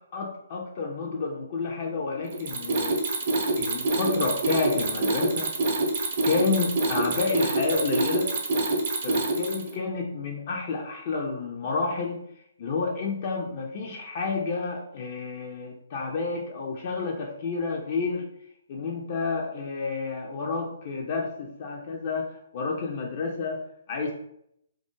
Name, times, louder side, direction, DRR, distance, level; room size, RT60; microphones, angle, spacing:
voice 1, 0.1-3.0 3.6-5.5 6.2-8.3 9.0-12.2 12.6-18.3 18.7-24.1, left 4 dB, 45° left, 0 dB, 0.4 m, -30 dB
Mechanisms, 2.3-9.7, right 2 dB, 50° right, 0.5 m, -26 dB
2.2 x 2.1 x 2.9 m, 0.73 s
figure-of-eight pair, 135°, 0 cm